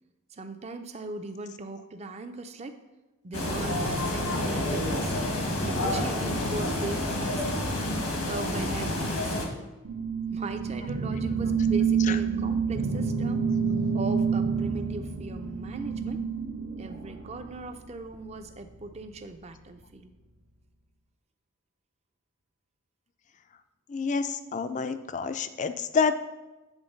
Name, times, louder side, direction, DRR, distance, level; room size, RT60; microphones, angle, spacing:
voice 1, 0.3-2.8 3.2-5.2 5.6-7.6 8.3-9.7 10.3-13.5 13.9-16.2 16.8-20.1 24.4-24.5, right 2 dB, 30° right, 8 dB, 0.5 m, -39 dB
sound 1, 3.3-9.4, left 1 dB, 90° left, 1.5 m, -29 dB
sound 2, 9.8-17.6, right 6 dB, 90° right, 0.9 m, -28 dB
voice 2, 23.9-26.2, left 5 dB, 35° left, 10 dB, 0.3 m, -28 dB
8.9 x 3.9 x 5.2 m, 1.1 s
head